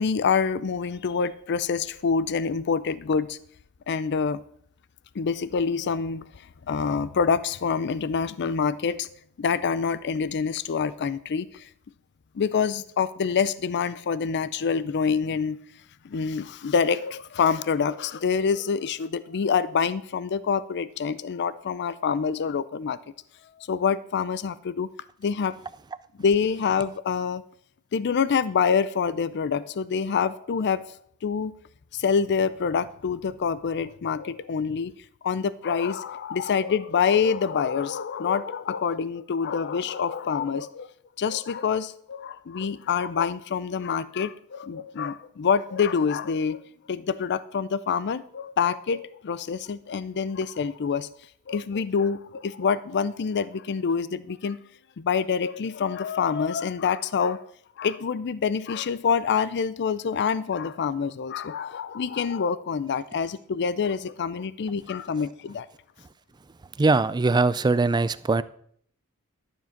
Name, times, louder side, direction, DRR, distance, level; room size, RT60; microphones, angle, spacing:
voice 1, 0.0-3.4 3.9-4.4 5.2-6.2 6.7-9.1 9.4-11.6 12.3-15.6 16.0-23.0 23.6-24.9 25.2-25.5 26.2-27.4 27.9-30.8 31.2-31.5 31.9-34.9 35.2-40.9 41.2-46.6 46.9-51.1 51.5-54.6 55.0-57.4 57.8-65.7, left 6 dB, 50° left, 0.4 m, -26 dB
voice 2, 66.8-68.4, right 3 dB, 20° right, 0.3 m, -21 dB
12.0 x 7.4 x 5.8 m
head